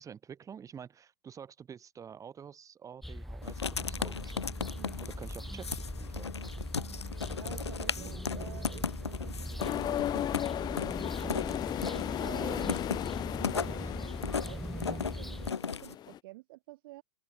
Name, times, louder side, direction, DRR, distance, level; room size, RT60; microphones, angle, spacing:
voice 1, 0.0-4.3 5.0-6.4 8.0-8.2 12.4-12.8, right 7 dB, 25° right, 3.0 m, -47 dB
sound 1, 3.0-15.5, equal, ahead, 0.7 m, -40 dB
Writing, 3.4-15.9, left 6 dB, 90° left, 1.0 m, -37 dB
voice 2, 7.4-11.5 12.2-12.8 13.4-17.0, right 19 dB, 60° right, 1.6 m, -50 dB
train passing by, 9.6-16.2, left 12 dB, 30° left, 0.8 m, -36 dB
hypercardioid pair, 95°, 14 cm